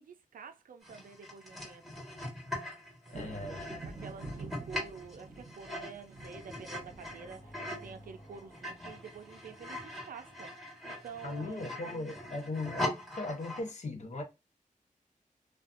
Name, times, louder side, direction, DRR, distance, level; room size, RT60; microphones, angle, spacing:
voice 1, 0.0-1.9 3.1-11.9, right 5 dB, 85° right, 0.4 m, -49 dB
sound 1, 0.8-7.9 8.3-13.7, left 1 dB, ahead, 1.3 m, -41 dB
voice 2, 3.1-3.6 11.2-14.2, left 2 dB, 55° left, 0.8 m, -38 dB
sound 2, 3.1-8.5, right 3 dB, 45° right, 0.9 m, -48 dB
sound 3, 6.5-10.4, equal, 35° left, 1.0 m, -56 dB
2.5 x 2.3 x 2.4 m
wide cardioid pair, 105°, 14 cm